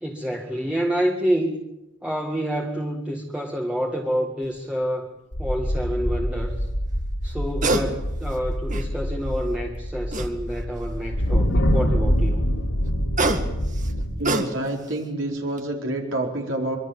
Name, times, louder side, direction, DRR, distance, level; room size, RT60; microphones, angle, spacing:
voice 1, 0.0-1.5 2.0-5.1 5.4-6.7 7.2-12.5, equal, 5° right, 0 dB, 2.0 m, -28 dB
sound 1, 4.4-4.6 7.3-7.9 8.3-9.1 10.1-10.8 12.9-14.9 15.3-15.6, right 2 dB, 40° right, 2.1 m, -26 dB
sound 2, 5.3-14.1, equal, 80° left, 3.9 m, -25 dB
voice 2, 14.2-16.8, right 1 dB, 65° right, 0 dB, 4.5 m, -27 dB
25.0 x 24.0 x 7.2 m, 0.93 s
head